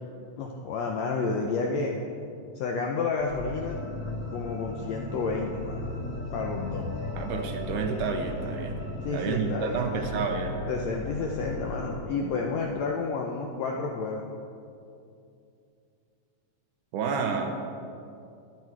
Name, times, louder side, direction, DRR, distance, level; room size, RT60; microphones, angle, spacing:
voice 1, 0.4-2.0 2.5-3.8 4.3-5.8 6.3-6.9 9.0-10.1 10.7-14.3, left 4 dB, 75° left, 0 dB, 1.6 m, -30 dB
sound 1, 3.2-12.0, left 2 dB, 45° left, 3.4 m, -36 dB
voice 2, 7.2-8.8 9.1-10.6 16.9-17.5, right 5 dB, 75° right, 4 dB, 2.2 m, -30 dB
11.5 x 11.5 x 4.6 m, 2.6 s
omnidirectional pair, 3.9 m